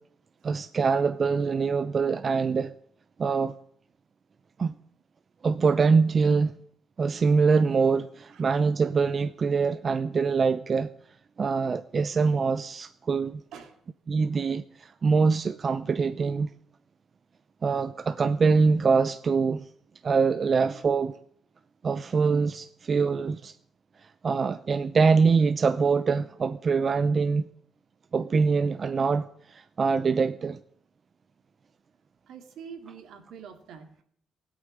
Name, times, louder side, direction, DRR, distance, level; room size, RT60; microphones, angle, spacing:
voice 1, 0.4-2.7 3.2-3.5 4.6-4.7 5.4-6.5 7.0-10.9 11.4-13.4 14.1-16.5 17.6-19.6 20.0-21.1 21.8-23.5 24.2-27.5 28.1-30.6, right 5 dB, 40° right, 0.7 m, -24 dB
voice 2, 32.3-34.0, right 7 dB, 80° right, 2.7 m, -45 dB
16.5 x 8.9 x 9.8 m
cardioid pair, 90°, 0 cm